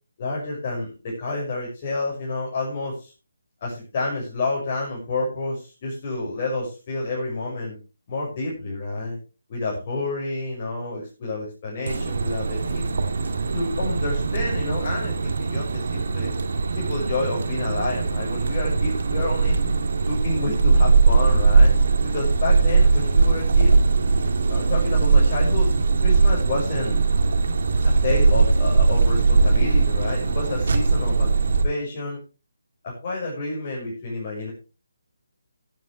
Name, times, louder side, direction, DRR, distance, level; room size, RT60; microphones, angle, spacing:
voice 1, 0.2-3.1 3.6-7.8 8.1-9.2 9.5-12.8 13.5-16.3 16.7-19.6 20.0-21.7 22.0-23.7 24.5-25.7 26.0-27.0 27.8-31.3 31.6-32.2 32.8-34.5, left 2 dB, 35° left, -4 dB, 5.9 m, -29 dB
sound 1, 11.9-31.6, right 4 dB, 60° right, 2.4 m, -20 dB
17.0 x 10.5 x 3.2 m, 0.32 s
figure-of-eight pair, 150°, 0 cm